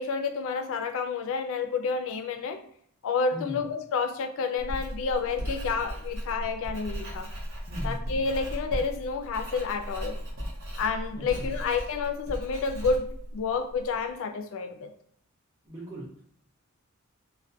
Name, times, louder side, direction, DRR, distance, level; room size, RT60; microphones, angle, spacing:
voice 1, 0.0-2.6 3.0-7.3 7.8-10.2 10.8-13.0 13.3-14.9, left 4 dB, 65° left, 6 dB, 0.3 m, -29 dB
voice 2, 3.3-3.7 7.7-8.2 11.2-11.5 15.6-16.2, equal, 15° right, -8 dB, 0.5 m, -39 dB
Writing, 4.6-14.0, equal, 65° right, 0.8 m, -36 dB
2.2 x 2.1 x 2.6 m, 0.66 s
head